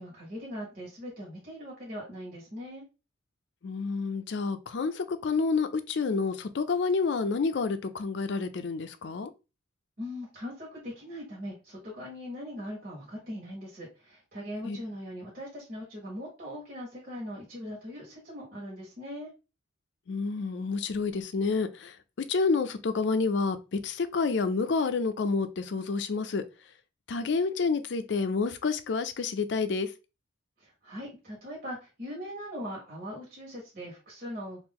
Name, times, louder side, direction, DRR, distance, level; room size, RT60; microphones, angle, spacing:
voice 1, 0.0-2.8 10.0-19.3 30.6-34.6, equal, 45° right, 1.2 m, -40 dB
voice 2, 3.6-9.3 14.7-14.8 20.1-21.9 22.3-26.4 27.1-29.9, left 4 dB, 60° left, 0.4 m, -29 dB
2.9 x 2.5 x 3.6 m
head